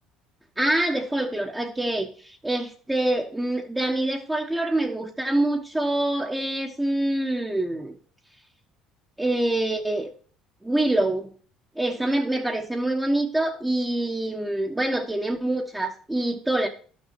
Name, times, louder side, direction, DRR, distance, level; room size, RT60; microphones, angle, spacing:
voice 1, 0.6-7.9 9.2-10.1 10.6-11.3 11.7-16.7, right 1 dB, 10° right, 0 dB, 1.3 m, -25 dB
12.0 x 6.3 x 4.3 m, 0.43 s
supercardioid pair, 90°, 0 cm